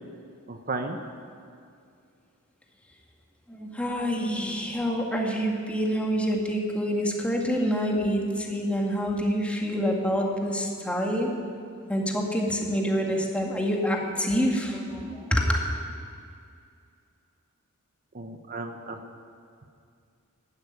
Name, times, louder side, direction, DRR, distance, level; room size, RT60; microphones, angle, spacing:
voice 1, 0.5-1.0 18.1-19.0, right 3 dB, 45° right, 5 dB, 0.9 m, -34 dB
voice 2, 3.5-11.3 11.9-15.6, equal, 5° left, 0 dB, 2.0 m, -27 dB
12.5 x 11.5 x 9.6 m, 2.3 s
head